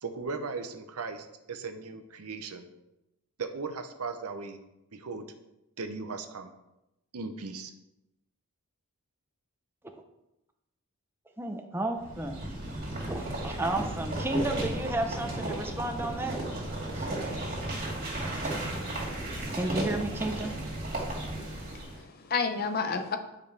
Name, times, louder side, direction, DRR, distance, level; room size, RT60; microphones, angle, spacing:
voice 1, 0.0-2.7 3.4-4.6 4.9-5.3 5.8-6.5 7.1-7.7, right 4 dB, 80° right, 8 dB, 0.8 m, -37 dB
voice 2, 11.4-12.6 13.1-16.4 16.9-17.1 18.4-18.7 19.6-20.6, right 1 dB, 10° right, 4 dB, 0.6 m, -33 dB
sound 1, 12.0-22.0, right 1 dB, 40° right, 2.5 m, -34 dB
voice 3, 21.4-23.2, left 5 dB, 40° left, 7 dB, 0.6 m, -31 dB
9.7 x 5.4 x 3.4 m, 0.90 s
head